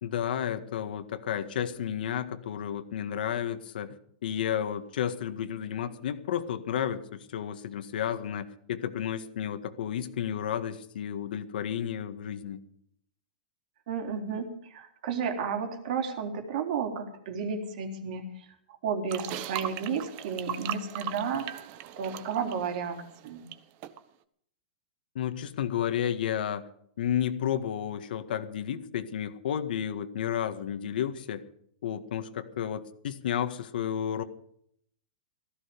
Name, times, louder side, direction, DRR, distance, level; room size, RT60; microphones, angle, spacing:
voice 1, 0.0-4.0 4.2-12.6 25.2-26.7 27.0-31.4 31.8-34.2, left 9 dB, 70° left, 9 dB, 1.8 m, -32 dB
voice 2, 13.9-18.3 18.7-21.5 22.0-23.4, right 6 dB, 60° right, 4 dB, 3.7 m, -32 dB
sound 1, 19.1-23.6 23.8-24.0, right 11 dB, 40° right, 1.2 m, -38 dB
16.5 x 14.5 x 5.3 m, 0.67 s
hypercardioid pair, 140°, 5 cm